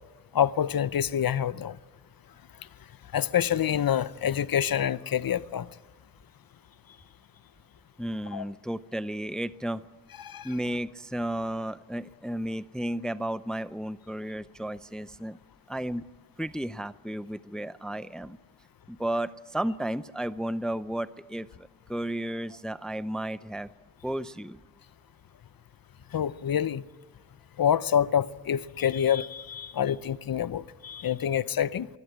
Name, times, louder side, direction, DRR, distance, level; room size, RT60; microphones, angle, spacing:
voice 1, 0.3-1.8 3.1-5.7 8.3-8.4 10.2-10.5 26.1-26.8 27.6-31.9, left 9 dB, 65° left, 0.8 m, -27 dB
voice 2, 8.0-9.8 10.4-15.4 15.7-16.0 16.4-18.4 18.9-23.7 24.0-24.6, right 1 dB, ahead, 0.6 m, -33 dB
24.0 x 16.0 x 7.5 m
wide cardioid pair, 75°, 37 cm